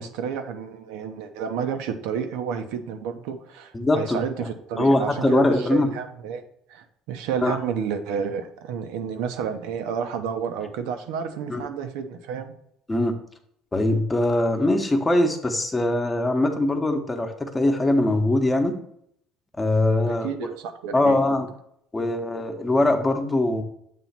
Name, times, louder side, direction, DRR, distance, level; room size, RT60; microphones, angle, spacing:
voice 1, 0.0-6.4 6.7-12.5 20.1-21.2, right 7 dB, 85° right, 7 dB, 0.8 m, -31 dB
voice 2, 3.7-4.5 4.8-5.9 7.4-7.6 11.5-11.6 12.9-13.1 13.7-18.7 19.6-20.5 20.9-21.5 21.9-23.6, left 1 dB, 15° left, 5 dB, 0.9 m, -22 dB
7.5 x 3.1 x 5.7 m, 0.72 s
cardioid pair, 125°, 0 cm